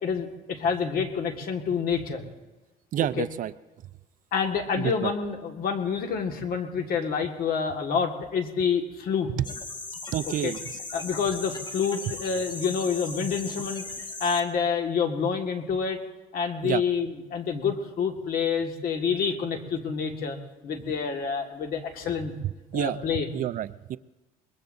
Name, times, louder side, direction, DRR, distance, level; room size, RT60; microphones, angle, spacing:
voice 1, 0.0-2.2 3.2-3.3 4.3-9.3 10.4-10.5 10.9-13.9 14.2-16.0 16.3-20.4 20.6-22.3 22.7-23.3, left 6 dB, 60° left, 5 dB, 1.7 m, -28 dB
voice 2, 2.9-3.5 4.8-5.1 10.1-10.6 16.6-16.8 22.7-23.0 23.3-24.0, right 11 dB, 50° right, 16 dB, 0.4 m, -28 dB
sound 1, 9.4-14.4, left 3 dB, 25° left, 1.5 m, -38 dB
22.5 x 20.5 x 2.6 m, 1.1 s
cardioid pair, 110°, 17 cm